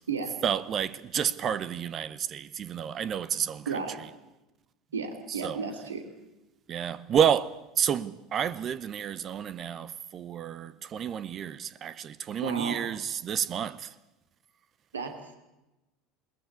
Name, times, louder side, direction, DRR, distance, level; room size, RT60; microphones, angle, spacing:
voice 1, 0.4-3.7 5.4-5.6 6.7-13.9, right 8 dB, 35° right, 0.8 m, -30 dB
voice 2, 3.7-4.0 4.9-6.0 12.4-12.8 14.9-15.4, right 5 dB, 75° right, 2.6 m, -33 dB
21.0 x 20.0 x 8.4 m
figure-of-eight pair, 70°, 0 cm